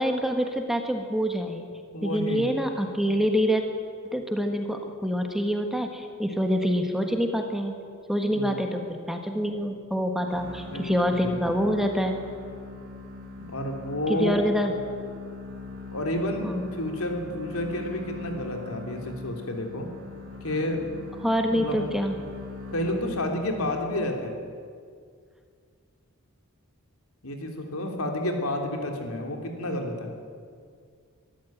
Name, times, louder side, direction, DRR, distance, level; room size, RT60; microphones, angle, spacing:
voice 1, 0.0-1.7 2.0-3.6 4.1-7.8 8.1-12.2 14.1-14.7 16.4-16.7 21.2-22.2, equal, ahead, 4 dB, 1.4 m, -26 dB
voice 2, 1.9-2.5 8.3-8.6 10.7-11.3 13.4-14.4 15.9-19.9 20.4-20.8 21.5-21.9 22.7-24.4 27.2-30.1, left 1 dB, 80° left, 3 dB, 3.2 m, -30 dB
sound 1, 10.3-23.7, left 3 dB, 70° right, 3.2 m, -41 dB
22.5 x 13.5 x 9.1 m, 2.2 s
head